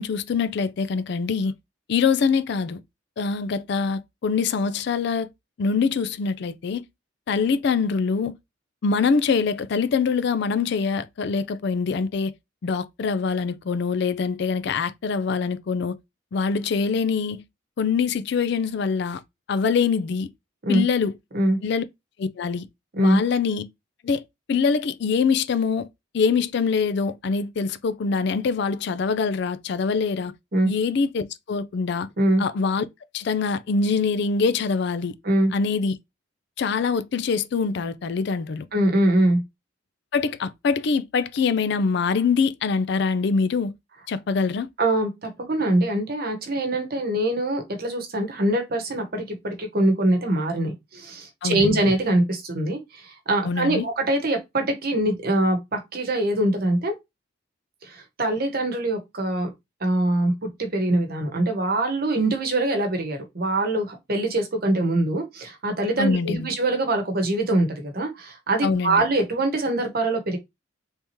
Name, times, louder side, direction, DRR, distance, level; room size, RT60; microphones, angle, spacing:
voice 1, 0.0-1.5 1.9-2.8 3.2-5.3 5.6-6.8 7.3-8.3 8.8-12.3 12.6-16.0 16.3-17.4 17.8-19.2 19.5-20.3 20.7-21.1 21.6-21.8 22.2-22.7 23.0-23.6 24.0-24.2 24.5-25.9 26.1-30.3 30.6-32.1 32.4-32.9 33.1-35.1 35.5-35.9 36.6-38.7 40.1-43.7 44.1-44.7 51.4-51.9 53.4-53.9 66.0-66.5 68.6-69.0, left 5 dB, 55° left, 0.4 m, -24 dB
voice 2, 38.7-39.4 44.8-56.9 57.8-59.5 59.8-70.4, right 1 dB, 50° right, 0.9 m, -23 dB
3.5 x 2.8 x 2.9 m
head